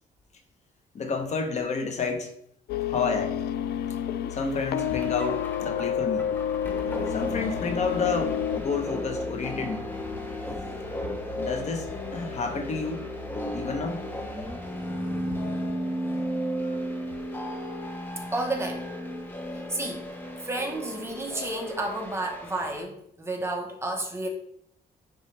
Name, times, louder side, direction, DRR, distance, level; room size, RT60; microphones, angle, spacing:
voice 1, 0.9-2.3 2.9-3.4 4.3-6.3 7.1-9.8 11.4-13.1 13.5-14.1, left 4 dB, 45° left, 6 dB, 0.9 m, -30 dB
sound 1, 2.7-8.6, left 10 dB, 80° left, 0.4 m, -30 dB
sound 2, 4.7-22.8, left 1 dB, 10° left, 0.9 m, -34 dB
voice 2, 18.3-18.9 19.5-20.1 20.4-24.3, right 2 dB, 15° right, 2 dB, 1.0 m, -31 dB
9.9 x 4.0 x 3.2 m, 0.70 s
cardioid pair, 145°, 17 cm